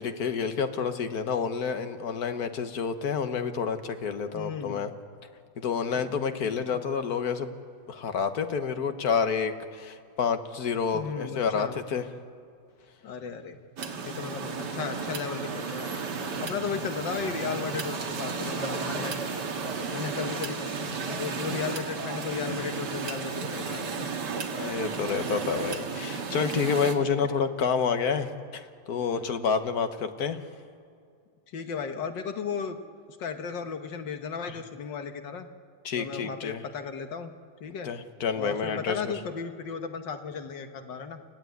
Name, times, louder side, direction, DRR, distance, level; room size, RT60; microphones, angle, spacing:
voice 1, 0.0-4.9 5.6-7.5 7.9-12.0 16.3-16.6 19.0-19.1 20.2-20.3 24.5-30.4 35.9-36.6 37.8-39.2, left 6 dB, 60° left, 9 dB, 1.6 m, -29 dB
voice 2, 4.3-4.8 5.9-6.2 6.5-6.8 10.9-11.8 13.0-13.6 14.0-16.0 16.4-19.4 19.9-24.0 26.3-26.4 31.5-32.8 33.1-35.5 36.0-37.3 37.6-37.9 38.4-41.2, left 6 dB, 80° left, 7 dB, 1.9 m, -35 dB
sound 1, 13.8-27.0, right 5 dB, 70° right, 2.2 m, -33 dB
29.5 x 15.0 x 9.3 m, 2.3 s
omnidirectional pair, 1.9 m